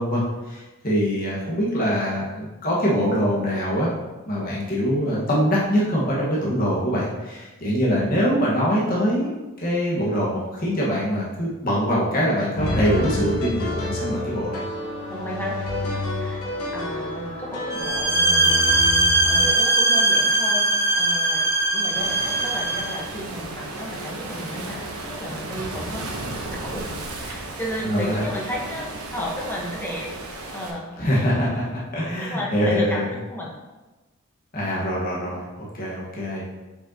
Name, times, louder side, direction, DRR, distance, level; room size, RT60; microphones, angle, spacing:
voice 1, 0.0-3.9 4.3-9.3 9.6-14.6 27.8-28.2 31.0-33.1 34.5-36.5, equal, 40° left, -6 dB, 1.4 m, -23 dB
sound 1, 12.6-19.5, left 1 dB, 85° left, 1.2 m, -28 dB
voice 2, 15.1-18.7 19.3-26.9 27.2-30.1 30.5-30.9 32.2-33.5, equal, 10° left, -4 dB, 1.0 m, -33 dB
sound 2, 17.7-23.0, right 2 dB, 15° right, 0.6 m, -20 dB
Waves surf, 22.0-30.7, right 2 dB, 90° right, 0.9 m, -34 dB
6.4 x 5.5 x 2.8 m, 1.1 s
head